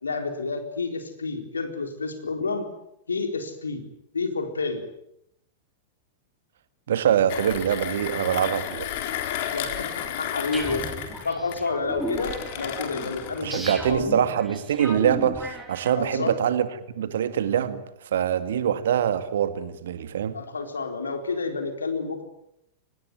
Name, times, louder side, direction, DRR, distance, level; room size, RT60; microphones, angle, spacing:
voice 1, 0.0-2.7 3.1-3.8 4.1-4.8 9.5-9.9 10.2-10.9 11.2-14.3 16.0-16.4 20.3-22.2, left 4 dB, 75° left, 7 dB, 4.1 m, -29 dB
voice 2, 6.9-8.9 13.4-16.7 17.0-17.8 18.1-20.4, right 9 dB, 60° right, 12 dB, 2.1 m, -24 dB
Mechanisms, 7.3-13.5, left 10 dB, 50° left, 3.8 m, -33 dB
sound 1, 10.5-16.3, right 1 dB, 5° right, 5.4 m, -36 dB
25.0 x 20.0 x 9.6 m, 0.79 s
figure-of-eight pair, 95°, 0 cm